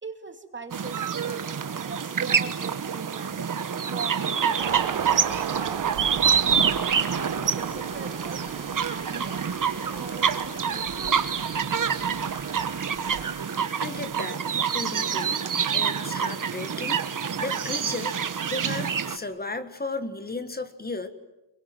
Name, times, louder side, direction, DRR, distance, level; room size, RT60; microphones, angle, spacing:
voice 1, 0.0-3.4 3.9-6.3 7.1-11.1, right 4 dB, 25° right, 5 dB, 2.6 m, -41 dB
sound 1, 0.7-19.2, right 7 dB, 45° right, 1.4 m, -27 dB
sound 2, 4.6-13.2, right 9 dB, 90° right, 1.5 m, -38 dB
Domestic sounds home sounds, 5.9-14.0, left 1 dB, 80° left, 5.9 m, -47 dB
voice 2, 13.8-15.4 15.7-17.0 17.4-18.2 18.5-21.1, left 3 dB, 20° left, 10 dB, 1.6 m, -34 dB
27.5 x 23.5 x 9.3 m, 0.99 s
wide cardioid pair, 150°, 45 cm